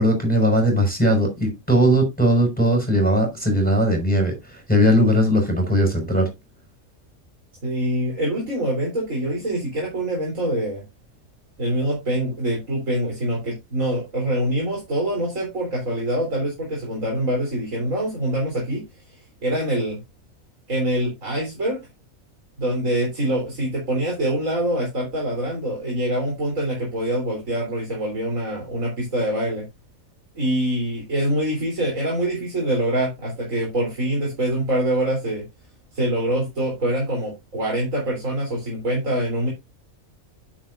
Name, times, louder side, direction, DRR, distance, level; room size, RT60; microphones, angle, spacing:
voice 1, 0.0-4.3 4.7-6.3, equal, 5° left, 5.4 m, -19 dB
voice 2, 7.6-10.8 11.6-18.8 19.4-20.0 20.7-21.8 22.6-29.7 30.4-35.4 35.9-39.5, right 1 dB, 70° right, 4.0 m, -24 dB
10.0 x 7.7 x 2.6 m
omnidirectional pair, 1.4 m